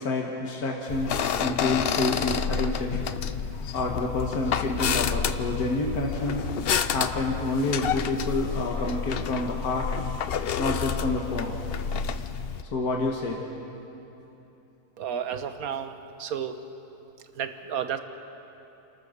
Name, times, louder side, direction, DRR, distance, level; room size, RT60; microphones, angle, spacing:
voice 1, 0.0-3.0 3.5-6.4 6.9-9.9 10.6-11.6 12.7-13.4, left 2 dB, 75° left, 0 dB, 2.0 m, -28 dB
sound 1, 0.9-12.6, left 7 dB, 60° left, 0.6 m, -29 dB
voice 2, 15.0-16.5 17.4-18.0, right 8 dB, 70° right, 9 dB, 1.5 m, -32 dB
29.5 x 14.0 x 6.7 m, 2.9 s
omnidirectional pair, 1.6 m